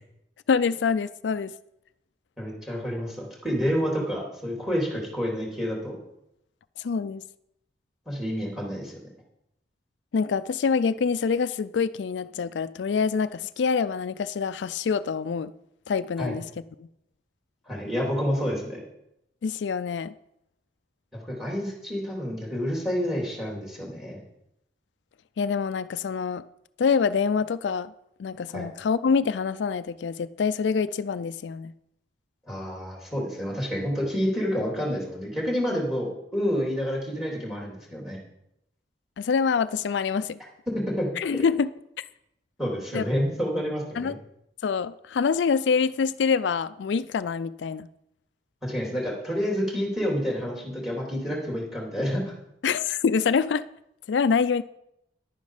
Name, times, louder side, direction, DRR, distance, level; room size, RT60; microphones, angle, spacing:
voice 1, 0.5-1.5 6.8-7.2 10.1-15.5 15.9-16.4 16.8-16.9 19.4-20.1 25.4-26.4 26.8-27.9 28.2-31.7 39.2-40.4 41.2-41.7 42.0-42.1 42.9-43.0 44.0-44.2 44.6-47.9 52.6-53.6 54.1-54.6, left 5 dB, 90° left, 0.4 m, -25 dB
voice 2, 2.4-6.0 8.1-9.0 16.2-16.3 17.7-18.8 21.1-24.2 28.5-28.7 32.5-38.2 40.7-41.4 42.6-44.2 48.6-52.3, equal, ahead, 3.2 m, -29 dB
11.0 x 9.4 x 4.9 m
head